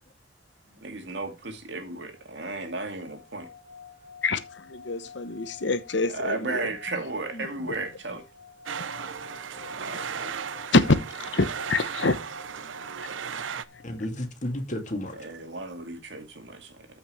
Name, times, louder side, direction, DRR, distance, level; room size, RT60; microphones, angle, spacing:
voice 1, 0.8-3.5 6.0-8.2 9.0-9.1 9.7-10.3 15.2-16.9, right 3 dB, 65° right, 2.5 m, -34 dB
sound 1, 2.2-14.0, left 6 dB, 35° right, 2.8 m, -50 dB
voice 2, 4.2-6.7 10.7-12.2 13.3-13.6, left 3 dB, 65° left, 0.9 m, -26 dB
voice 3, 7.3-7.7 9.5-9.7 10.0-10.7 12.6-12.7 13.4-13.5 13.8-15.3, left 1 dB, 40° left, 2.4 m, -35 dB
sound 2, 8.7-13.6, right 7 dB, 85° right, 0.6 m, -35 dB
14.0 x 5.9 x 3.2 m
head